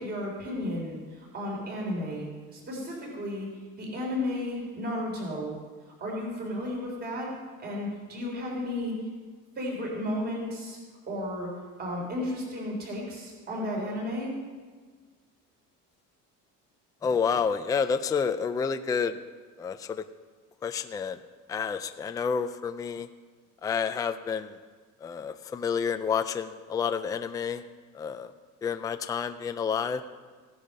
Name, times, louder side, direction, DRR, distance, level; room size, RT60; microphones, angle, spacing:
voice 1, 0.0-3.5 3.8-5.5 6.0-7.3 7.6-9.0 9.6-10.8 11.1-11.5 11.8-14.3, left 1 dB, 30° right, -2 dB, 3.7 m, -33 dB
voice 2, 17.0-19.1 19.6-20.0 20.6-21.2 21.5-23.1 23.6-24.6 25.0-27.6 27.9-28.3 28.6-30.0, left 6 dB, 10° left, 9 dB, 0.4 m, -29 dB
16.0 x 10.0 x 5.4 m, 1.5 s
cardioid pair, 165°, 32 cm